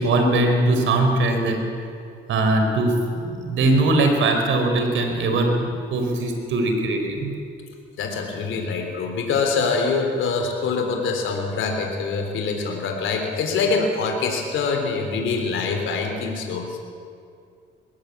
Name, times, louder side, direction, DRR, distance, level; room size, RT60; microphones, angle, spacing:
voice 1, 0.0-1.6 2.3-7.3, right 2 dB, 75° right, 4 dB, 4.4 m, -21 dB
voice 2, 8.0-16.8, left 4 dB, 80° left, 3 dB, 3.6 m, -24 dB
21.5 x 17.0 x 8.5 m, 2.4 s
cardioid pair, 90°, 20 cm